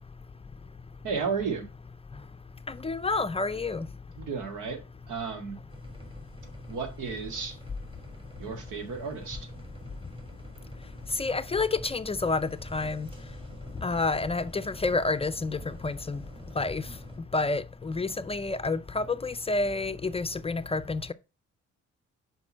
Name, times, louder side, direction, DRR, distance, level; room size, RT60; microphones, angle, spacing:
voice 1, 1.0-1.7 4.2-4.8 5.1-5.6 6.7-7.6 8.4-9.5, right 5 dB, 90° right, 2.0 m, -33 dB
voice 2, 2.7-3.9 11.2-13.1 13.8-16.2 16.6-16.9 17.3-21.1, left 3 dB, 20° left, 0.4 m, -29 dB
sound 1, 5.7-17.2, equal, 20° right, 3.1 m, -46 dB
5.9 x 5.3 x 6.2 m
cardioid pair, 90°, 30 cm